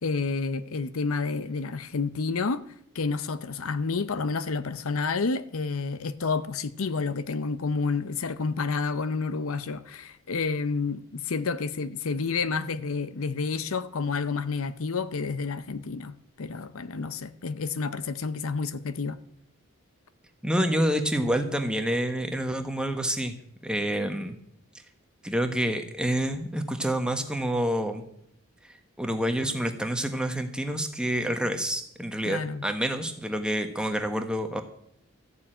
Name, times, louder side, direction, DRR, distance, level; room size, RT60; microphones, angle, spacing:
voice 1, 0.0-2.6 2.9-19.2 32.3-32.6, left 4 dB, 70° left, 0.7 m, -30 dB
voice 2, 20.4-23.3 23.6-24.3 25.2-28.0 29.0-34.6, equal, 5° right, 1.1 m, -28 dB
14.0 x 7.2 x 8.8 m
head